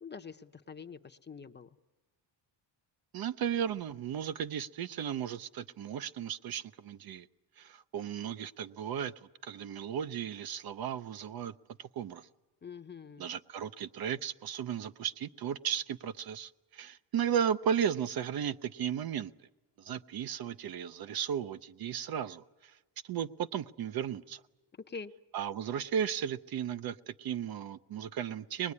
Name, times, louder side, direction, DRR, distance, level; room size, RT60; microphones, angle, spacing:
voice 1, 0.0-1.7 12.6-13.3 24.9-25.1, left 5 dB, 25° left, 7 dB, 0.8 m, -45 dB
voice 2, 3.1-7.3 7.6-11.5 11.8-12.3 13.2-19.5 19.8-22.8 23.0-24.4 25.3-28.7, right 8 dB, 55° right, 13 dB, 0.7 m, -35 dB
24.0 x 20.5 x 9.7 m, 1.2 s
cardioid pair, 130°, 44 cm